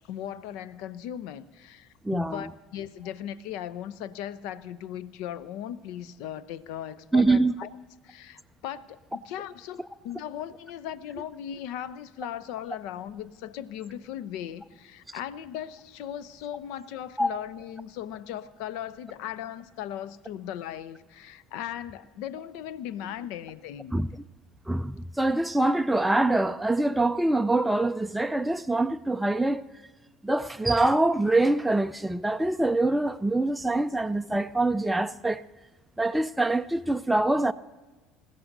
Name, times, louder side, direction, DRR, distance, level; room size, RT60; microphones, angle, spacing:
voice 1, 0.0-7.7 8.0-23.9, left 10 dB, 60° left, 0.6 m, -38 dB
voice 2, 2.0-2.5 7.1-7.5 17.2-17.3 23.9-24.1 24.7-29.6 30.2-35.4 36.0-37.5, right 2 dB, 5° right, 0.4 m, -24 dB
26.5 x 15.0 x 2.7 m
figure-of-eight pair, 65°, 0 cm